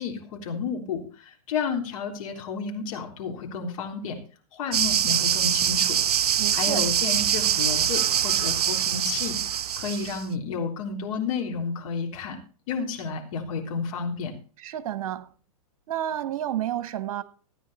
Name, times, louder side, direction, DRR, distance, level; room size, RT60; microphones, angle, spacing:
voice 1, 0.0-4.2 4.5-6.0 6.5-9.4 9.8-12.4 12.7-14.3, left 5 dB, 60° left, 3.5 m, -31 dB
sound 1, 4.7-10.2, right 9 dB, 90° right, 0.5 m, -24 dB
voice 2, 6.4-6.9 14.6-15.3 15.9-17.2, right 11 dB, 60° right, 1.3 m, -30 dB
14.5 x 9.3 x 4.2 m
hypercardioid pair, 125°, 19 cm